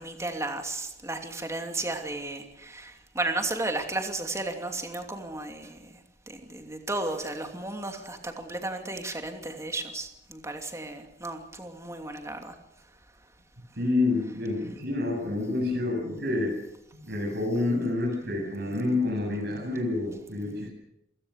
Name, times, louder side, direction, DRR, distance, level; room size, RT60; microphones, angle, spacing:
voice 1, 0.0-12.5, right 2 dB, 15° right, 4 dB, 2.8 m, -34 dB
voice 2, 13.8-16.5 17.1-20.7, left 2 dB, 65° right, -2 dB, 7.7 m, -28 dB
27.0 x 17.5 x 6.7 m, 0.84 s
head